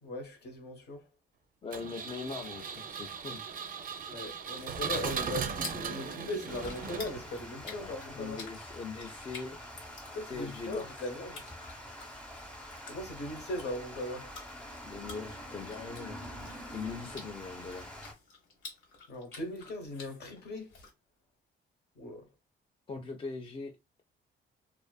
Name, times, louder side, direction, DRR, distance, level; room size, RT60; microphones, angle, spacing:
voice 1, 0.0-1.1 4.1-8.4 10.1-11.4 12.9-14.3 19.1-20.7 22.0-22.2, left 1 dB, 55° left, 1.0 m, -39 dB
voice 2, 1.6-3.4 7.6-9.6 10.3-11.2 14.8-16.2 16.7-17.9 22.9-23.7, left 4 dB, 25° left, 0.4 m, -41 dB
Engine, 1.7-7.4, right 6 dB, 45° right, 0.4 m, -37 dB
sound 1, 4.3-20.9, left 4 dB, 80° left, 1.0 m, -51 dB
Water, 6.5-18.1, equal, 5° left, 0.8 m, -46 dB
2.5 x 2.4 x 2.2 m
cardioid pair, 90°, 20 cm